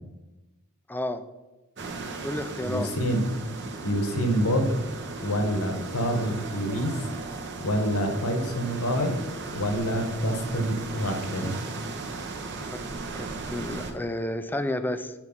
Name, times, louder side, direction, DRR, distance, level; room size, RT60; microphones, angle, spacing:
voice 1, 0.9-1.2 2.2-2.9 12.7-12.8 13.1-15.1, left 1 dB, 10° left, 10 dB, 0.4 m, -31 dB
sound 1, 1.8-13.9, right 3 dB, 55° right, 1.0 m, -36 dB
voice 2, 2.6-3.2 3.8-4.7 5.2-7.0 7.6-9.2 9.5-11.6, equal, 80° left, 5 dB, 1.3 m, -27 dB
7.5 x 4.7 x 5.5 m, 1.1 s
head